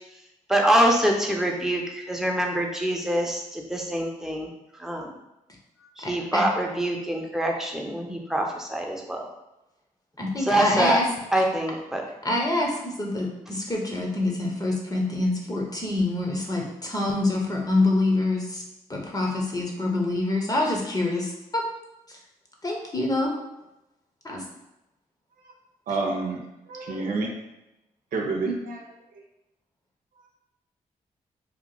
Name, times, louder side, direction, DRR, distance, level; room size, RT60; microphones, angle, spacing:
voice 1, 0.5-4.5 4.8-5.1 6.0-9.3 10.4-11.0 11.3-12.0, right 1 dB, 5° right, 0 dB, 0.8 m, -25 dB
voice 2, 6.0-6.4 10.2-11.0 12.2-18.6 18.9-21.7 22.6-23.3 24.2-24.4 28.5-28.6, left 2 dB, 25° left, -1 dB, 1.0 m, -26 dB
voice 3, 25.9-26.4 26.7-27.3 28.1-28.8, right 3 dB, 75° right, 0 dB, 0.7 m, -28 dB
3.1 x 2.4 x 3.9 m, 0.92 s
supercardioid pair, 50°, 14 cm